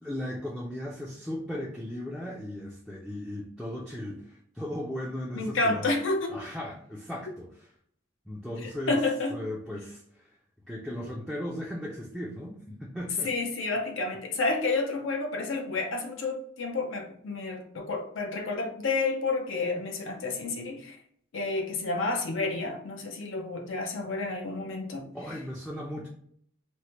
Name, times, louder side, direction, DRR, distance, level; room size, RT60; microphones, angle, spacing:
voice 1, 0.0-5.9 6.3-7.7 8.3-9.0 9.3-10.4 10.7-13.3 25.1-26.1, left 1 dB, ahead, -5 dB, 0.3 m, -37 dB
voice 2, 5.3-6.4 8.6-9.4 13.2-21.0 21.3-25.1, left 3 dB, 80° left, 2 dB, 0.6 m, -30 dB
3.0 x 2.1 x 2.9 m, 0.64 s
head